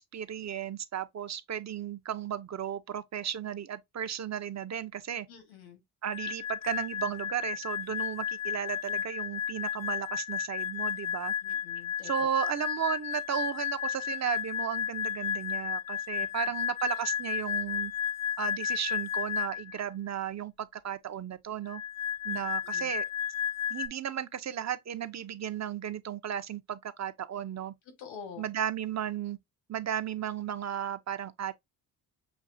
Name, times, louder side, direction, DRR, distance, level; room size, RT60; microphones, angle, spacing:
voice 1, 0.0-5.3 6.0-11.3 12.0-17.9 18.4-21.8 22.2-23.0 23.7-27.7 28.4-29.4 29.7-31.5, right 9 dB, 40° right, 0.6 m, -34 dB
voice 2, 5.3-5.8 11.4-12.3 16.2-16.3 22.3-22.9 28.0-28.5, left 7 dB, 90° left, 1.6 m, -47 dB
sound 1, 6.1-19.8 21.7-23.9, left 9 dB, 40° left, 0.4 m, -33 dB
6.2 x 2.7 x 2.6 m
supercardioid pair, 70°, 44 cm